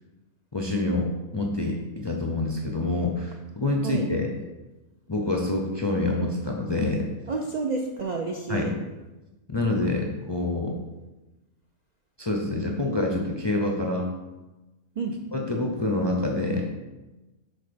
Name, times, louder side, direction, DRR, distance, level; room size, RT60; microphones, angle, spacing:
voice 1, 0.5-4.3 5.1-7.1 8.5-8.7 9.5-10.8 12.2-14.1 15.3-16.6, left 2 dB, 35° left, 0 dB, 0.4 m, -26 dB
voice 2, 7.3-8.7 15.0-15.2, right 3 dB, 85° right, 1 dB, 0.3 m, -29 dB
6.4 x 4.2 x 5.1 m, 1.1 s
omnidirectional pair, 1.5 m